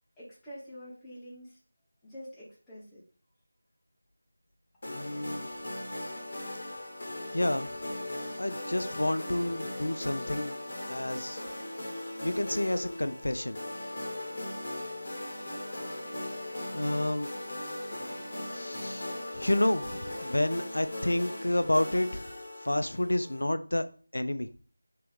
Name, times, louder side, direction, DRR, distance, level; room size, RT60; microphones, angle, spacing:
voice 1, 0.2-1.6 2.0-3.0, equal, 5° left, -9 dB, 0.9 m, -46 dB
voice 2, 4.8-5.5 7.3-7.7 8.4-10.5 10.9-11.4 12.2-13.6 16.7-17.3 18.4-22.2 22.6-23.8 24.1-24.5, left 1 dB, 70° left, 11 dB, 0.4 m, -30 dB
sound 1, 4.8-23.4, left 1 dB, 35° left, 1.2 m, -38 dB
3.4 x 3.0 x 3.5 m, 0.42 s
figure-of-eight pair, 170°, 0 cm